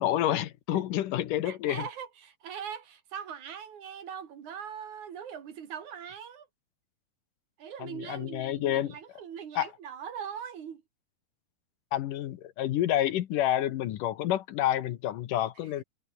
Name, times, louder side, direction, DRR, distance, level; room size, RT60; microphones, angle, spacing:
voice 1, 0.0-1.9 7.8-9.0 9.6-9.7 11.9-15.8, left 12 dB, 70° left, 2.6 m, -29 dB
voice 2, 1.4-6.5 7.6-10.8 15.6-15.8, right 8 dB, 60° right, 3.3 m, -41 dB
omnidirectional pair, 4.1 m